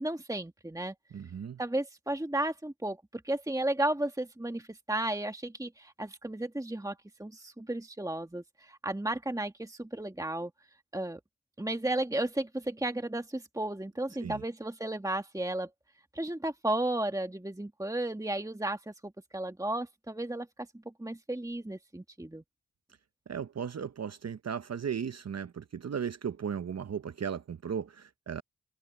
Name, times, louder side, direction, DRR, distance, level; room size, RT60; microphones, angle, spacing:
voice 1, 0.0-0.9 1.6-10.5 10.9-11.2 11.6-15.7 16.1-20.5 21.0-22.4, right 1 dB, 10° right, 1.7 m, -34 dB
voice 2, 1.1-1.6 14.2-14.4 23.3-28.4, right 7 dB, 60° right, 0.8 m, -36 dB
cardioid pair, 45°, 29 cm